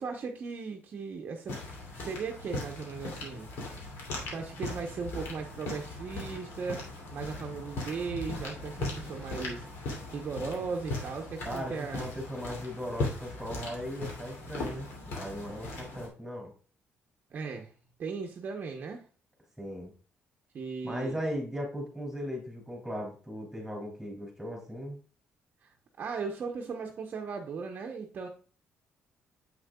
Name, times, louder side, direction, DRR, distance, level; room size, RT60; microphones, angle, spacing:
voice 1, 0.0-1.6 1.9-3.5 4.3-6.8 7.1-9.7 10.1-12.1 17.3-17.7 18.0-19.0 20.5-21.2 25.6-28.3, right 5 dB, 45° right, 1 dB, 0.9 m, -37 dB
sound 1, 1.5-16.1, left 2 dB, 80° left, 2.6 m, -39 dB
voice 2, 11.4-16.5 19.6-19.9 20.8-25.0, equal, ahead, -1 dB, 2.7 m, -37 dB
7.5 x 6.4 x 2.3 m, 0.40 s
cardioid pair, 130°, 4 cm